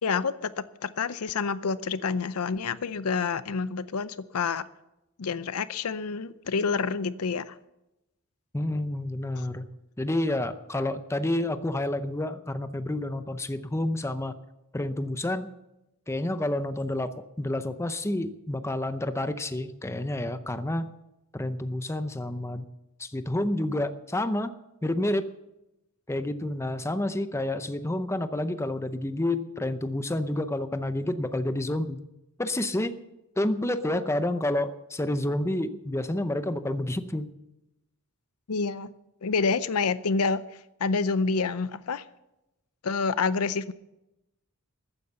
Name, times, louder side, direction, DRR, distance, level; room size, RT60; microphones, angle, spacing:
voice 1, 0.0-4.7 5.2-7.6 9.3-9.5 38.5-38.9 39.2-40.4 40.8-42.0 42.8-43.7, left 4 dB, 90° left, 15 dB, 0.6 m, -28 dB
voice 2, 8.5-9.7 10.0-14.3 14.7-15.5 16.1-21.0 21.3-22.7 23.0-24.5 24.8-25.2 26.1-32.0 32.4-33.0 33.4-37.3, left 1 dB, 10° left, 10 dB, 0.6 m, -29 dB
14.0 x 9.6 x 6.9 m, 0.92 s
head